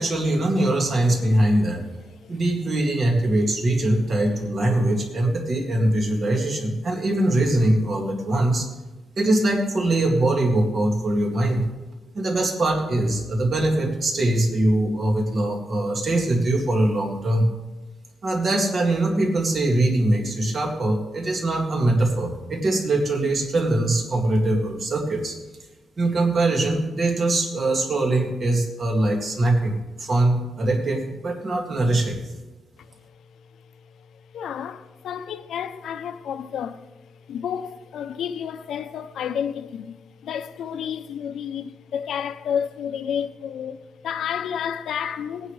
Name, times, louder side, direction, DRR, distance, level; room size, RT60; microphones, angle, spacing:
voice 1, 0.0-1.8 2.3-8.7 9.2-11.6 12.1-17.5 18.2-25.4 26.0-32.2, right 1 dB, 35° right, 2.1 m, -22 dB
voice 2, 33.9-45.5, left 8 dB, 70° left, 0.5 m, -31 dB
18.0 x 9.8 x 3.2 m
cardioid pair, 135°, 0 cm